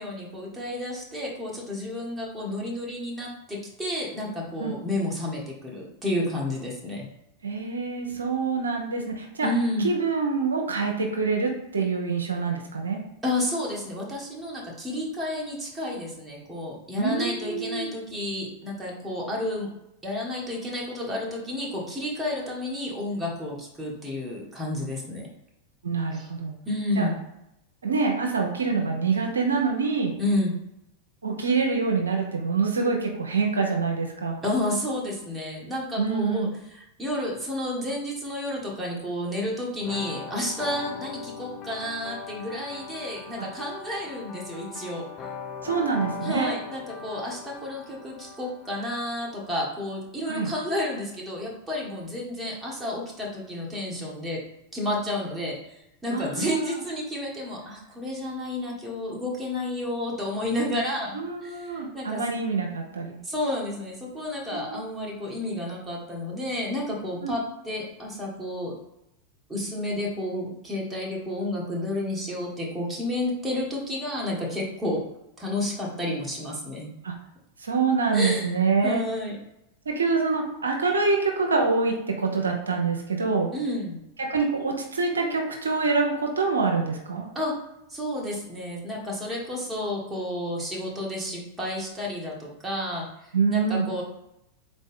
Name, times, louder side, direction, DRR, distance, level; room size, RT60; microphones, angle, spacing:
voice 1, 0.0-7.0 9.4-9.9 13.2-19.7 20.0-25.3 26.1-26.3 26.6-27.1 30.2-30.5 34.4-36.5 37.0-45.3 46.2-54.4 54.7-55.5 56.0-62.2 63.2-68.7 69.5-75.0 75.4-76.9 78.1-78.5 78.8-79.4 83.5-84.0 87.3-87.5 87.9-94.0, left 1 dB, 10° right, -3 dB, 1.5 m, -31 dB
voice 2, 7.4-9.5 9.8-13.0 17.0-17.9 25.8-26.6 27.0-27.1 27.8-30.1 31.2-34.4 36.0-36.5 43.4-43.5 45.6-46.5 50.3-50.5 56.1-56.8 61.1-63.2 64.5-64.7 67.2-67.3 77.0-77.2 77.6-79.0 79.9-83.5 84.2-87.3 93.3-93.9, right 4 dB, 85° right, 2 dB, 0.7 m, -26 dB
sound 1, 39.8-49.4, left 5 dB, 40° left, 0.6 m, -40 dB
4.1 x 3.1 x 3.6 m, 0.84 s
hypercardioid pair, 95°, 0 cm